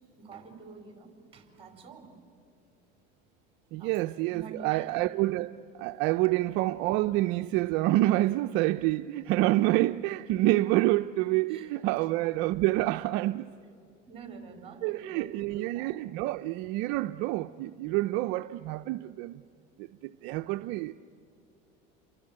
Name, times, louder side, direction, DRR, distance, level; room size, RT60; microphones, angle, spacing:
voice 1, 0.2-2.2 3.8-3.9 4.3-5.0 11.5-11.7 12.0-12.1 14.1-16.0, right 4 dB, 25° right, 4.6 m, -47 dB
voice 2, 3.7-13.5 14.8-19.4 19.8-20.9, right 17 dB, 65° right, 0.6 m, -28 dB
29.0 x 23.5 x 8.7 m
supercardioid pair, 110°, 21 cm